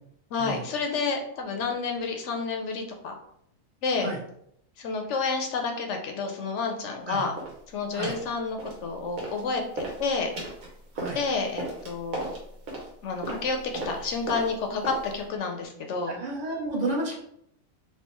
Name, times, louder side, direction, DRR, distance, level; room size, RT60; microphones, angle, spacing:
voice 1, 0.3-3.1 3.8-4.1 4.8-7.3 7.7-10.3 11.1-12.3 13.0-13.6 13.8-16.2, left 4 dB, 70° left, 3 dB, 0.8 m, -30 dB
sound 1, 7.4-7.6 8.0-8.3 8.6-9.4 9.7-15.3, right 2 dB, 85° right, 1.4 m, -36 dB
voice 2, 16.1-17.1, right 2 dB, 35° right, -2 dB, 0.8 m, -31 dB
3.4 x 2.8 x 2.9 m, 0.72 s
omnidirectional pair, 1.4 m